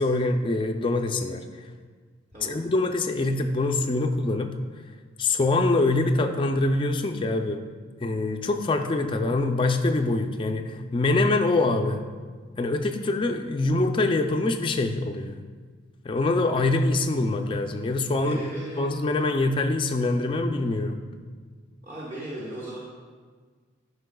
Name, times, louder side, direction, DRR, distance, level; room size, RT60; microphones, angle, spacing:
voice 1, 0.0-1.4 2.4-4.5 5.2-7.6 8.0-12.0 12.6-15.4 16.0-18.4 18.8-21.0, left 2 dB, 25° left, 5 dB, 0.3 m, -24 dB
voice 2, 18.2-18.8 21.8-22.8, right 1 dB, 35° right, -8 dB, 1.1 m, -36 dB
11.5 x 5.5 x 2.2 m, 1.5 s
head